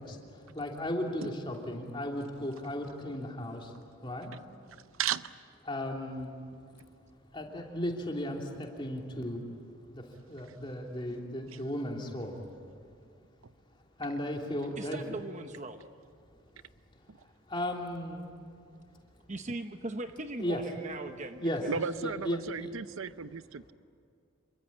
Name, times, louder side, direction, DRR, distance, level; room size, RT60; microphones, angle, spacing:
voice 1, 0.0-3.7 4.0-4.3 5.6-6.4 7.3-9.4 9.9-12.4 14.0-15.0 17.2-18.3 20.4-20.6 21.4-21.6 22.0-22.7, left 1 dB, 25° left, 0 dB, 3.1 m, -35 dB
voice 2, 5.0-5.3 17.1-17.2 21.7-23.7, right 7 dB, 80° right, 14 dB, 0.7 m, -35 dB
voice 3, 14.8-15.8 19.3-21.8, right 2 dB, 35° right, 7 dB, 0.9 m, -39 dB
27.5 x 23.5 x 8.7 m, 2.3 s
head